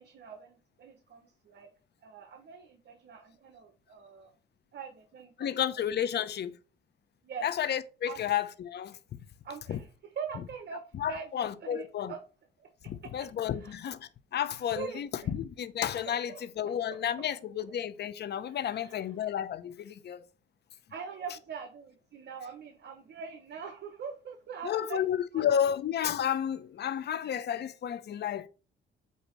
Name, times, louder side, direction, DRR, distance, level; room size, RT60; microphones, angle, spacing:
voice 1, 0.0-1.7 2.0-4.3 4.7-5.5 6.2-6.3 7.2-7.5 8.1-8.3 9.4-9.9 10.1-12.2 12.6-13.1 13.6-13.8 14.7-15.3 16.3-17.0 18.5-19.1 20.9-25.0 25.3-25.4, right 6 dB, 60° right, 1.2 m, -43 dB
voice 2, 5.4-6.5 7.4-9.0 9.7-9.8 10.9-12.1 12.9-20.3 24.6-28.5, left 9 dB, 55° left, 0.8 m, -32 dB
8.3 x 2.9 x 6.0 m
cardioid pair, 90°, 20 cm